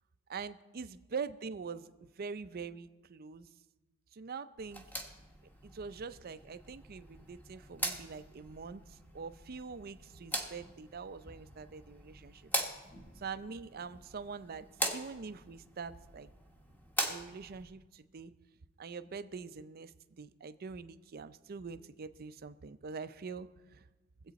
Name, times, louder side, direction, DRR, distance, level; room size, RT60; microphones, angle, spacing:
voice 1, 0.3-3.5 4.1-4.8 5.6-12.5 13.2-14.7 14.9-16.3 17.1-18.3 18.8-23.8, right 5 dB, 45° right, 12 dB, 0.5 m, -44 dB
sound 1, 4.6-17.6, equal, 10° left, 1.0 m, -41 dB
22.5 x 8.0 x 4.1 m, 1.2 s
head